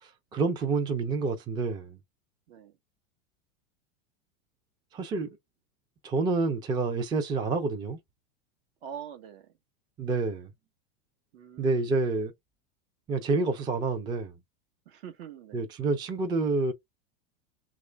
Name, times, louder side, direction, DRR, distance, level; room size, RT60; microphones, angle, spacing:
voice 1, 0.0-2.0 4.9-5.3 6.0-8.0 10.0-10.5 11.6-12.3 13.1-14.3 15.5-16.7, right 3 dB, 15° right, 0.4 m, -28 dB
voice 2, 8.8-9.5 11.3-11.9 14.9-15.7, right 8 dB, 65° right, 1.0 m, -44 dB
3.1 x 2.4 x 3.2 m
supercardioid pair, 130°, 34 cm